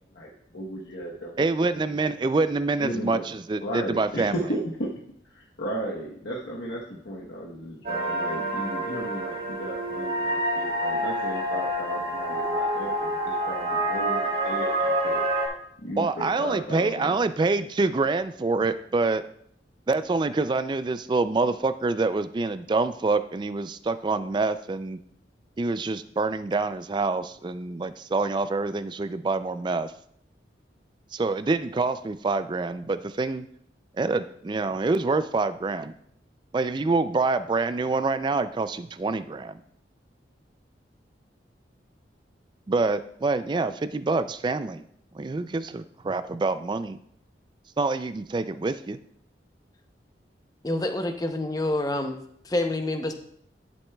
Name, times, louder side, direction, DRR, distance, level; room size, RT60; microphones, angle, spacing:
voice 1, 0.1-1.8 2.8-3.2 3.6-4.9 5.3-15.2 15.8-17.2, equal, 75° left, -3 dB, 1.0 m, -35 dB
voice 2, 1.4-4.3 16.0-19.2 19.9-25.0 25.6-29.9 31.1-33.5 34.0-35.9 36.5-39.5 42.7-44.8 45.1-47.0 47.8-49.0, right 3 dB, 25° right, 12 dB, 0.3 m, -26 dB
sound 1, 7.8-15.5, right 1 dB, 50° right, 2.3 m, -27 dB
voice 3, 50.6-53.1, left 1 dB, 20° left, 6 dB, 0.6 m, -27 dB
11.0 x 7.1 x 2.3 m, 0.68 s
head